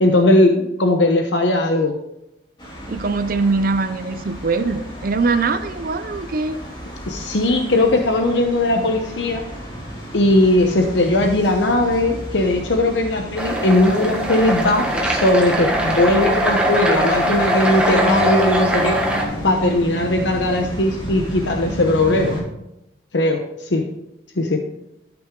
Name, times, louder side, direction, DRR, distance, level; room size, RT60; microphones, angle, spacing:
voice 1, 0.0-1.9 7.1-9.4 10.1-19.0 19.4-22.4 23.1-23.8 24.4-24.6, left 1 dB, 75° left, 4 dB, 0.9 m, -18 dB
sound 1, 2.6-22.4, right 1 dB, 25° left, 2.6 m, -32 dB
voice 2, 2.9-6.6, right 3 dB, 50° right, 10 dB, 0.5 m, -22 dB
sound 2, 13.4-19.2, right 1 dB, 5° right, 1.3 m, -21 dB
12.5 x 6.1 x 3.7 m, 0.85 s
head